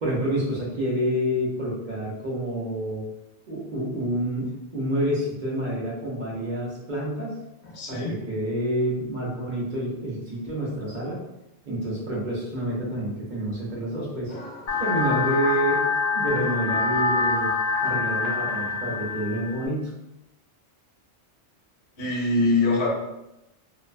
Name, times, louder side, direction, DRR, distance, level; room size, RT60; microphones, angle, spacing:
voice 1, 0.0-3.0 3.5-7.4 7.9-11.2 11.6-14.3 14.8-17.5 17.8-19.9, equal, 50° right, -5 dB, 0.7 m, -28 dB
voice 2, 7.6-8.1 14.3-15.0 22.0-22.9, left 2 dB, 75° left, -3 dB, 1.0 m, -25 dB
sound 1, 14.7-19.7, left 4 dB, 60° left, 0.4 m, -25 dB
2.5 x 2.1 x 2.4 m, 0.91 s
omnidirectional pair, 1.2 m